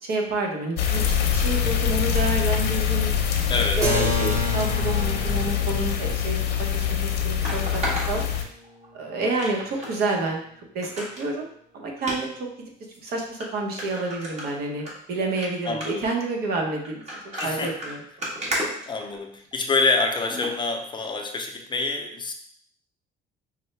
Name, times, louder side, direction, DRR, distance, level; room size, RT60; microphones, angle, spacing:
voice 1, 0.0-3.1 3.8-6.4 6.7-8.2 8.9-10.4 10.7-11.5 11.7-12.5 13.0-18.0, right 2 dB, 65° right, 0 dB, 1.0 m, -29 dB
sound 1, 0.8-8.4, left 8 dB, 75° left, 0.6 m, -24 dB
voice 2, 3.5-3.8 15.7-16.0 17.3-17.7 18.9-22.3, left 3 dB, 25° left, 3 dB, 0.5 m, -26 dB
Keyboard (musical), 3.8-9.4, equal, 20° right, 1.0 m, -33 dB
sound 2, 7.4-8.9 9.4-10.0 10.3-10.4 10.8-11.3 12.0-12.2 12.9-13.0 13.4-13.5 13.8-14.9 15.3-15.5 15.8-16.1 16.8-19.5 20.3-20.5 21.0-21.1, right 1 dB, 45° right, 1.4 m, -33 dB
5.2 x 2.2 x 3.2 m, 0.66 s
cardioid pair, 110°, 17 cm